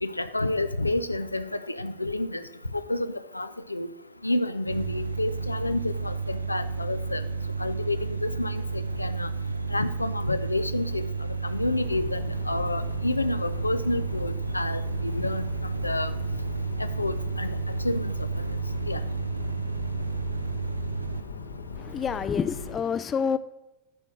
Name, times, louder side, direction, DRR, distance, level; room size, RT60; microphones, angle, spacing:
voice 1, 0.0-2.4 2.7-3.9 4.2-7.2 7.6-9.3 9.7-11.0 11.4-16.1 16.8-17.6 17.8-18.1 18.9-19.0, left 2 dB, 85° left, 12 dB, 0.4 m, -29 dB
sound 1, 4.7-21.2, right 4 dB, 80° right, 0.5 m, -31 dB
sound 2, 11.6-22.8, left 4 dB, 65° left, 0.9 m, -39 dB
voice 2, 21.8-23.4, left 7 dB, 20° left, 14 dB, 0.4 m, -28 dB
10.5 x 4.5 x 5.9 m, 0.96 s
figure-of-eight pair, 90°, 0 cm